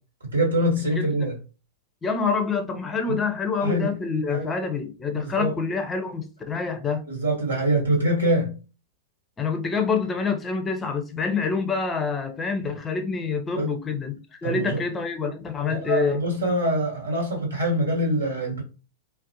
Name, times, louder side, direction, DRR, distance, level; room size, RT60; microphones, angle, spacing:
voice 1, 0.3-1.4 3.1-3.2 3.6-4.0 4.3-4.5 5.2-5.5 7.1-8.6 13.5-13.7 14.4-14.8 15.7-18.6, right 1 dB, 80° right, 1.2 m, -24 dB
voice 2, 1.0-1.3 2.0-7.1 9.4-16.2, left 5 dB, 20° left, 0.5 m, -27 dB
2.5 x 2.0 x 2.7 m
figure-of-eight pair, 100°, 0 cm